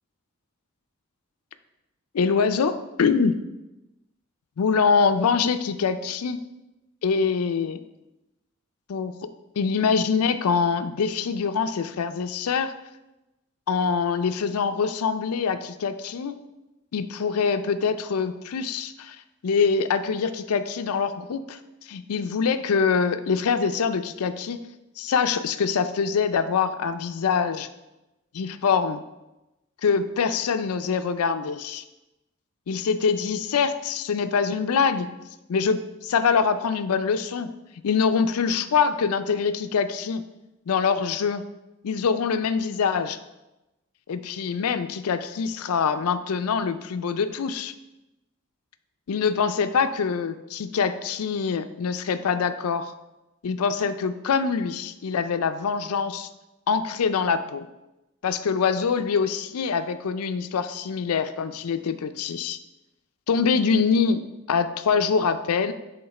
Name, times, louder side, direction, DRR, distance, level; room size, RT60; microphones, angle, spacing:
voice 1, 2.1-3.4 4.6-6.4 7.0-7.8 8.9-9.1 9.6-12.7 13.7-16.4 16.9-19.2 19.4-21.6 21.9-24.6 25.0-27.7 28.3-29.0 29.8-31.8 32.7-35.1 35.5-37.5 37.8-40.2 40.7-41.4 41.8-43.2 44.1-47.7 49.1-52.9 53.4-56.3 56.7-57.7 58.2-62.6 63.3-64.2 64.5-65.7, left 5 dB, 85° left, 10 dB, 0.4 m, -24 dB
7.8 x 3.6 x 4.2 m, 0.98 s
head